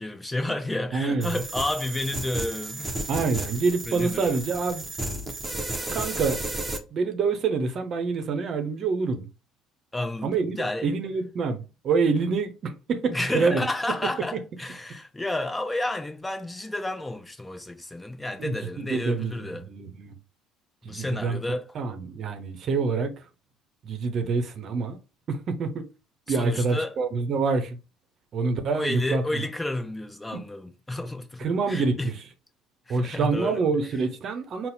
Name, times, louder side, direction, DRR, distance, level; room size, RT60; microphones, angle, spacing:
voice 1, 0.0-3.0 3.9-4.4 9.9-10.9 13.1-19.6 20.8-21.6 26.3-26.9 28.7-32.1 32.9-33.6, left 1 dB, 15° left, 0.8 m, -31 dB
voice 2, 0.9-1.3 3.1-4.9 5.9-6.4 6.9-9.3 10.2-13.7 18.4-20.1 20.8-23.1 23.8-25.0 25.3-25.8 26.3-27.8 28.3-29.5 30.3-30.4 31.4-32.1 32.9-34.7, right 4 dB, 50° right, 0.7 m, -27 dB
sound 1, 1.2-6.8, right 1 dB, 15° right, 0.8 m, -33 dB
4.0 x 2.0 x 4.1 m
hypercardioid pair, 60°, 0 cm